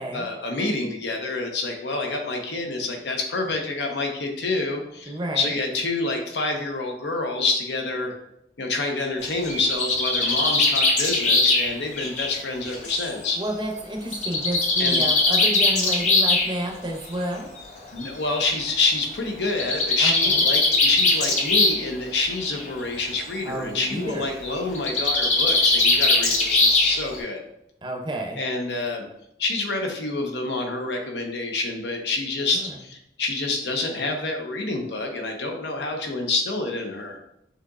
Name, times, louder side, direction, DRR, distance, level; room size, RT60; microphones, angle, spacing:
voice 1, 0.1-8.1 8.6-13.4 14.8-15.0 17.9-27.4 28.4-29.1 29.4-37.2, left 3 dB, 80° left, 2 dB, 0.8 m, -27 dB
voice 2, 5.1-5.5 13.4-17.5 20.0-20.4 23.4-24.3 27.8-28.4 32.5-32.7, right 1 dB, 25° right, 1 dB, 0.6 m, -30 dB
Bird, 9.3-13.0 14.1-16.5 17.6-17.7 18.0-18.1 18.3-18.4 19.5-21.9 22.2-22.7 24.7-27.2, left 2 dB, 40° left, 0.7 m, -21 dB
6.2 x 2.9 x 2.4 m, 0.79 s
head